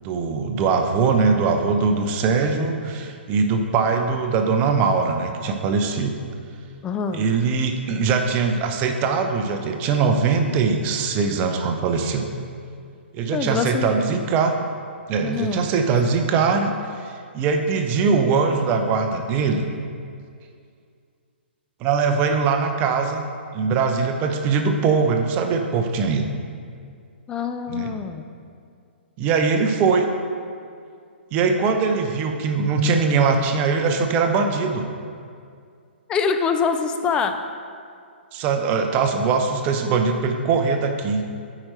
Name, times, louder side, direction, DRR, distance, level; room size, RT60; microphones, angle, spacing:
voice 1, 0.0-6.1 7.1-12.3 13.1-14.5 15.1-16.7 17.0-19.7 21.8-23.2 23.5-26.3 27.7-27.9 29.2-30.1 31.3-34.9 38.3-41.2, right 5 dB, 25° right, 5 dB, 0.6 m, -21 dB
voice 2, 6.8-7.3 13.3-14.2 15.2-15.7 27.3-28.3 36.1-37.4, left 6 dB, 15° left, 7 dB, 0.3 m, -25 dB
8.7 x 5.0 x 4.3 m, 2.3 s
figure-of-eight pair, 120°, 6 cm